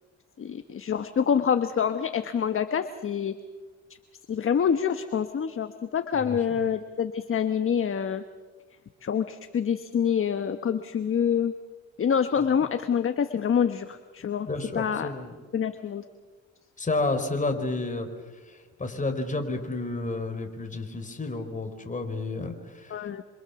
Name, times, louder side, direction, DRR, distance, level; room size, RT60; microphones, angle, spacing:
voice 1, 0.4-3.4 4.3-8.2 9.0-11.5 12.0-14.5 14.7-15.1 15.5-16.0 22.9-23.2, left 7 dB, 45° left, 9 dB, 1.3 m, -26 dB
voice 2, 14.5-15.3 16.8-18.1 18.8-23.0, left 2 dB, 25° left, 5 dB, 4.5 m, -30 dB
27.0 x 26.5 x 7.1 m, 1.4 s
cardioid pair, 90°, 30 cm